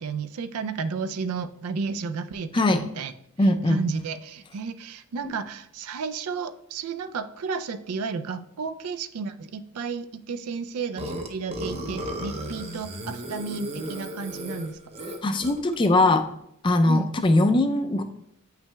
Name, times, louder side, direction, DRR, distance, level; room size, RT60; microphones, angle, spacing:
voice 1, 0.0-3.1 3.7-14.8 16.9-17.1, right 5 dB, 85° right, 11 dB, 0.4 m, -32 dB
voice 2, 2.5-2.9 3.4-3.8 5.2-5.3 15.2-16.2 16.6-18.0, left 2 dB, 20° left, 8 dB, 0.4 m, -21 dB
Burping eructation, 11.0-15.7, right 1 dB, 30° right, 0.6 m, -35 dB
8.6 x 5.8 x 2.2 m, 0.75 s
head